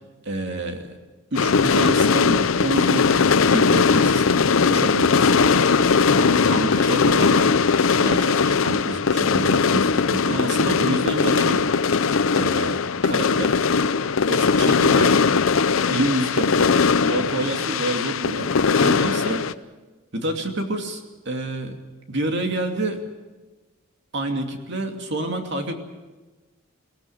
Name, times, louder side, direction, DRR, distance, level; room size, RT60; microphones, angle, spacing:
voice 1, 0.2-1.0 1.3-5.5 6.1-7.5 8.0-11.7 12.4-13.6 14.3-15.2 15.9-18.5 18.8-19.5 20.1-21.8 22.1-23.0 24.1-25.8, right 1 dB, 60° right, 4 dB, 2.7 m, -28 dB
sound 1, 1.4-19.5, left 5 dB, 85° left, 0.7 m, -19 dB
23.5 x 17.0 x 8.8 m, 1.2 s
head